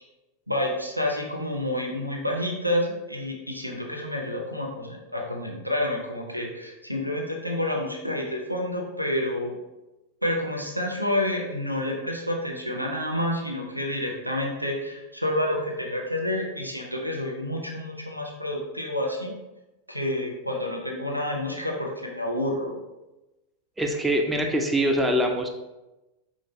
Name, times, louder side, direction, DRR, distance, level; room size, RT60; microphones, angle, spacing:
voice 1, 0.5-9.6 10.2-19.3 19.9-22.7, left 1 dB, 90° right, -1 dB, 0.7 m, -29 dB
voice 2, 23.8-25.5, equal, 10° right, 3 dB, 0.5 m, -23 dB
5.2 x 2.6 x 3.1 m, 1.0 s
figure-of-eight pair, 90°, 0 cm